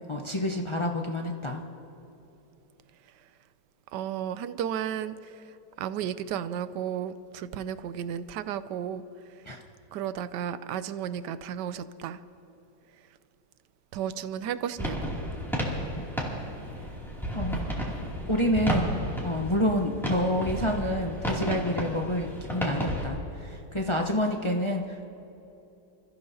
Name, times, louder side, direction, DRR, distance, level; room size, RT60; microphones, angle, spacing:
voice 1, 0.1-1.6 9.5-9.6 17.3-17.6 18.3-25.1, left 1 dB, 40° left, 1 dB, 0.4 m, -28 dB
voice 2, 3.9-9.0 9.9-12.2 13.9-15.2, right 9 dB, 75° right, 13 dB, 1.1 m, -33 dB
sound 1, 14.8-23.0, right 1 dB, ahead, 2.5 m, -32 dB
28.0 x 14.5 x 2.8 m, 3.0 s
omnidirectional pair, 2.1 m